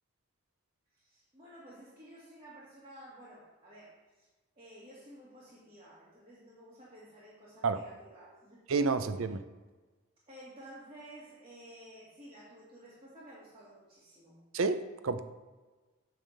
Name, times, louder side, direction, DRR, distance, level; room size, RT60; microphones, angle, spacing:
voice 1, 0.9-4.3 4.6-8.6 10.3-14.5, right 1 dB, 25° right, -9 dB, 1.7 m, -53 dB
voice 2, 8.7-9.4 14.5-15.2, right 4 dB, 70° right, 10 dB, 0.6 m, -29 dB
8.9 x 3.5 x 6.5 m, 1.3 s
head